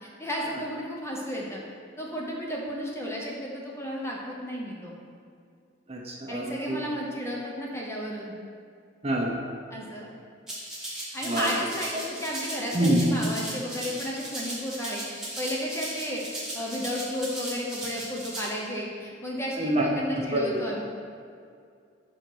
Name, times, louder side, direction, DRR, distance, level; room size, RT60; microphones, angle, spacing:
voice 1, 0.0-1.6 2.0-4.9 6.3-8.3 9.7-10.1 11.1-16.2 16.5-20.8, equal, 15° left, -3 dB, 0.7 m, -33 dB
voice 2, 5.9-6.8 9.0-9.4 11.2-11.5 12.7-13.0 19.6-19.9 20.2-20.6, right 1 dB, 30° right, -2 dB, 0.7 m, -26 dB
Rattle (instrument), 10.5-18.5, right 1 dB, 5° right, 1.1 m, -37 dB
6.4 x 3.9 x 4.5 m, 2.3 s
head